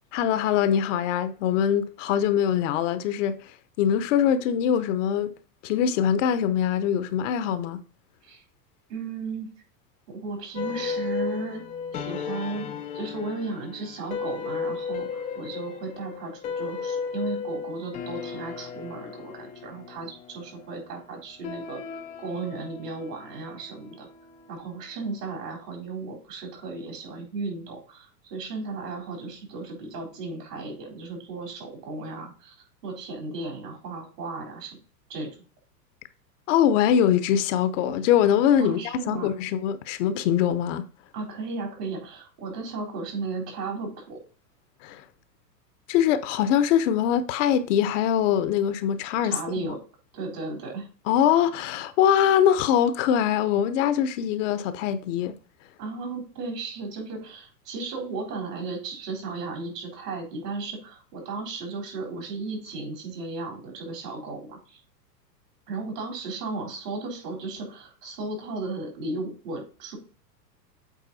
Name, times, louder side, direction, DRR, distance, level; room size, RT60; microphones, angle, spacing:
voice 1, 0.1-5.3 5.6-7.8 36.5-40.8 44.8-45.0 45.9-49.7 51.1-55.3, left 9 dB, 50° left, 0.7 m, -23 dB
voice 2, 8.9-9.5 10.1-11.6 11.9-12.7 12.9-21.8 22.2-24.1 24.5-32.5 32.8-34.8 35.1-35.3 38.6-39.3 41.1-44.2 49.2-49.8 50.1-50.9 55.8-64.8 65.7-70.0, right 3 dB, 70° right, 3.9 m, -35 dB
sound 1, 10.5-25.1, left 6 dB, 15° left, 0.4 m, -35 dB
8.3 x 3.8 x 4.1 m
hypercardioid pair, 100°, 50 cm